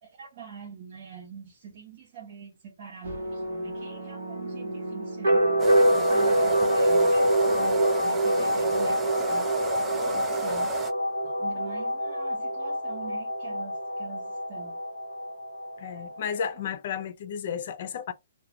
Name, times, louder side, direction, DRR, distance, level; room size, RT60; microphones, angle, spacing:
voice 1, 0.0-10.8 11.4-14.8, right 7 dB, 40° right, 0.9 m, -45 dB
sound 1, 3.0-16.6, right 1 dB, 80° right, 1.0 m, -26 dB
sound 2, 5.6-10.9, right 5 dB, 15° right, 0.3 m, -34 dB
voice 2, 15.8-18.1, left 7 dB, 50° left, 0.4 m, -33 dB
2.4 x 2.2 x 2.9 m
hypercardioid pair, 150°, 0 cm